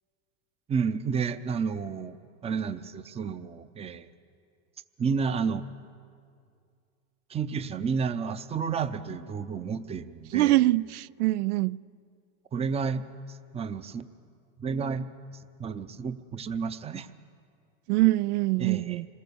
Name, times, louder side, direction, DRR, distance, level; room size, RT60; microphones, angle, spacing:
voice 1, 0.7-2.1 2.4-4.1 5.0-5.6 7.3-10.6 12.5-14.1 14.6-15.1 15.6-17.1 18.6-19.0, right 5 dB, 15° right, 0.6 m, -31 dB
voice 2, 10.3-11.8 17.9-19.1, right 18 dB, 90° right, 0.5 m, -24 dB
26.5 x 19.5 x 7.0 m
supercardioid pair, 135°, 44 cm